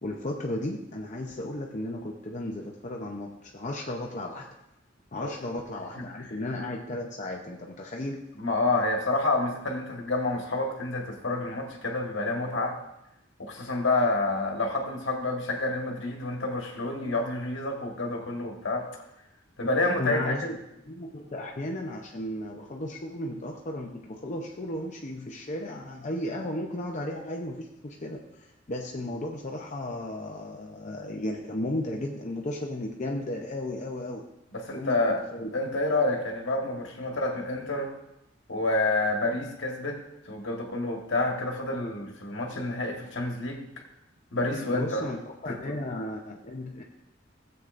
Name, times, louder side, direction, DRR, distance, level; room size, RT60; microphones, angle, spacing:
voice 1, 0.0-4.5 5.1-8.3 19.8-20.6 20.9-34.3 34.7-35.5 44.7-46.8, left 1 dB, 40° left, 0 dB, 0.8 m, -35 dB
voice 2, 5.9-6.4 8.4-12.8 13.4-18.9 19.6-20.3 34.5-35.2 35.5-37.9 38.5-40.0 40.2-43.7 44.3-45.1 45.5-45.7, left 2 dB, 65° left, 1 dB, 1.5 m, -28 dB
16.5 x 8.0 x 2.6 m, 0.87 s
head